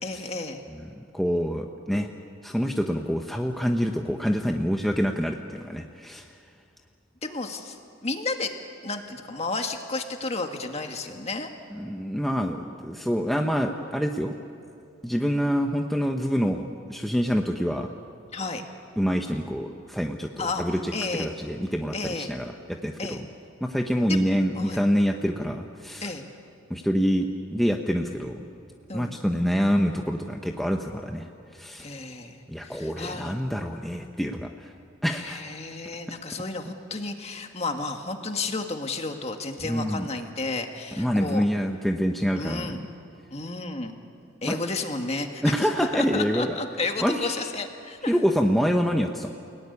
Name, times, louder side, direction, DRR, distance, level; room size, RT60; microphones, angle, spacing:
voice 1, 0.0-0.6 7.2-7.8 8.0-8.5 8.8-11.5 18.3-18.7 20.4-21.3 21.9-22.3 23.0-23.2 24.1-24.3 24.5-24.8 26.0-26.2 28.9-29.1 31.8-33.3 35.1-41.4 42.3-42.8 43.3-43.9 44.4-48.2, left 3 dB, 30° left, 5 dB, 1.8 m, -32 dB
voice 2, 0.7-2.1 2.4-6.3 11.7-14.3 15.0-17.9 19.0-20.9 21.2-23.2 23.6-26.1 26.7-28.4 28.9-31.9 32.5-34.7 35.0-35.4 39.6-40.1 41.0-42.7 44.5-44.6 45.4-46.6 47.0-47.5 48.1-49.3, equal, ahead, 2 dB, 0.9 m, -26 dB
29.0 x 18.0 x 9.8 m, 2.6 s
head